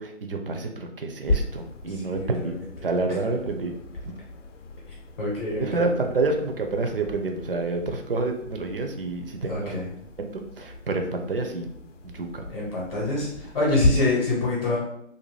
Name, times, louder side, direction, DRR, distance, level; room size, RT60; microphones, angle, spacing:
voice 1, 0.0-2.6 2.8-3.7 5.5-9.7 10.2-11.7 12.0-12.4, right 3 dB, 50° right, 4 dB, 0.4 m, -28 dB
sound 1, 1.2-13.9, left 2 dB, 70° left, 0.6 m, -34 dB
voice 2, 2.0-2.7 5.2-5.9 9.5-9.9 12.5-14.8, left 2 dB, 30° left, -6 dB, 0.8 m, -26 dB
2.6 x 2.2 x 3.0 m, 0.74 s
hypercardioid pair, 160°, 37 cm